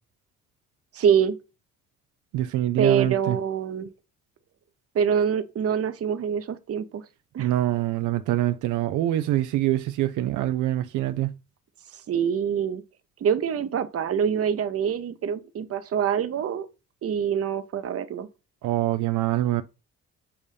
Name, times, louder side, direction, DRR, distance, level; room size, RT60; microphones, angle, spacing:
voice 1, 0.9-1.4 2.8-3.9 4.9-7.0 7.3-7.5 11.9-12.8 13.2-16.7 17.0-18.3, right 8 dB, 50° right, 0.8 m, -25 dB
voice 2, 2.3-3.4 7.4-11.3 18.6-19.6, right 14 dB, 85° right, 0.5 m, -25 dB
7.1 x 2.7 x 5.0 m
cardioid pair, 90°, 30 cm